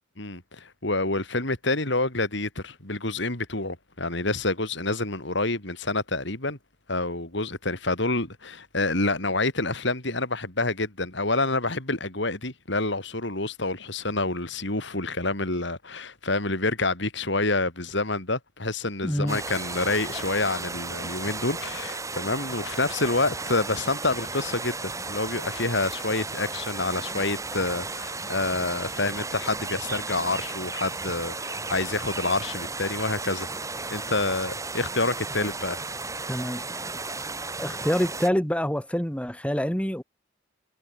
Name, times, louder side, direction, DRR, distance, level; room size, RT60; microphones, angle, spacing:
voice 1, 0.2-6.6 6.9-33.5 33.9-35.8, left 2 dB, 65° left, 4.6 m, -28 dB
voice 2, 19.0-19.4 36.3-36.6 37.6-40.0, equal, 5° left, 2.8 m, -26 dB
sound 1, 19.3-38.3, right 3 dB, 15° right, 2.5 m, -34 dB
head